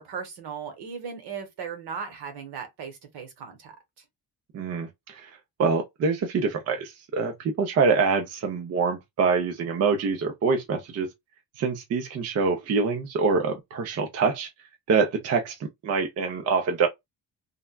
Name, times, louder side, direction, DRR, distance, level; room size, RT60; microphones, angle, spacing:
voice 1, 0.0-3.8, right 6 dB, 70° right, 1.1 m, -37 dB
voice 2, 4.5-5.3 5.6-11.1 11.6-14.5 14.9-16.9, right 5 dB, 40° right, 0.5 m, -25 dB
3.4 x 2.2 x 2.2 m
cardioid pair, 180°, 42 cm